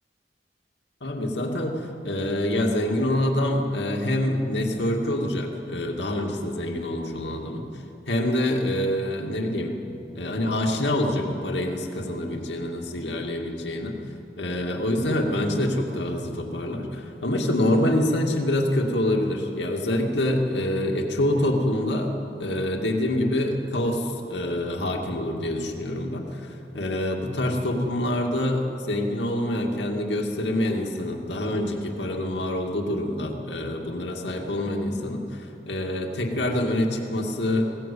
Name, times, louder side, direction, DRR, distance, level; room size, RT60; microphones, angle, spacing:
voice 1, 1.0-7.7 8.1-9.8 10.1-14.0 14.4-37.7, left 1 dB, 85° left, 1 dB, 2.3 m, -26 dB
20.0 x 18.0 x 8.5 m, 2.9 s
head